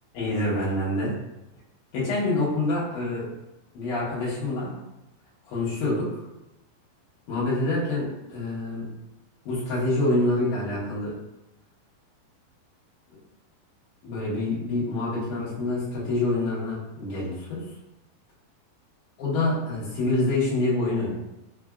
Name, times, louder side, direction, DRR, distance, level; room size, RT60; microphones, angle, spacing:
voice 1, 0.1-1.2 1.9-3.3 3.7-4.7 5.5-6.2 7.3-8.9 9.5-11.2 14.0-17.7 19.2-21.1, left 2 dB, 65° left, -8 dB, 2.4 m, -26 dB
5.9 x 2.5 x 2.3 m, 0.93 s
omnidirectional pair, 4.4 m